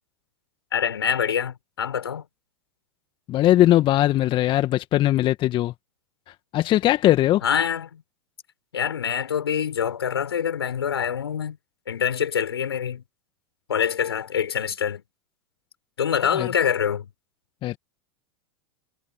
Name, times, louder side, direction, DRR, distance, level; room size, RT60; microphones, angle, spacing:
voice 1, 0.7-2.3 7.4-8.0 8.7-11.6 11.9-13.0 13.7-15.0 16.0-17.1, left 8 dB, 80° left, 6.9 m, -25 dB
voice 2, 3.3-5.7 6.5-7.4 16.4-16.5 17.6-17.8, left 14 dB, 40° left, 1.8 m, -19 dB
hypercardioid pair, 90°, 13 cm